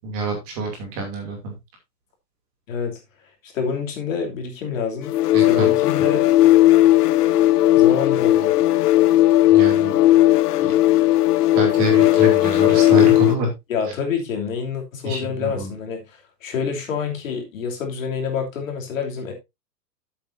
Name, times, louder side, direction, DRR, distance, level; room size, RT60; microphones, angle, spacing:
voice 1, 0.0-1.5 5.3-5.7 9.5-9.9 10.6-10.7 11.5-13.5 15.0-15.7, right 1 dB, 25° right, 2.6 m, -26 dB
voice 2, 2.7-3.0 3.4-5.1 5.5-6.3 7.7-8.6 13.7-19.3, left 6 dB, 50° left, 3.0 m, -27 dB
sound 1, 5.1-13.5, left 15 dB, 65° left, 0.7 m, -16 dB
12.5 x 7.9 x 2.7 m
hypercardioid pair, 175°, 49 cm